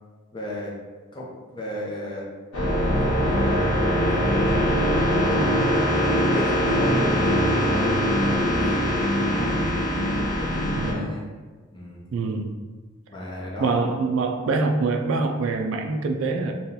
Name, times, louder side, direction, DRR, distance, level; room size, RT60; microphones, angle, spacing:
voice 1, 0.3-0.8 1.1-2.3 3.0-3.8 4.1-4.9 5.2-5.8 6.3-9.7 10.0-11.3 11.7-12.0 13.1-13.8, left 1 dB, 20° left, -4 dB, 0.6 m, -35 dB
sound 1, 2.5-10.9, equal, 90° left, 1.1 m, -22 dB
voice 2, 10.8-11.1 12.1-12.5 13.6-16.5, right 3 dB, 65° right, 5 dB, 0.3 m, -24 dB
2.8 x 2.2 x 3.8 m, 1.4 s
head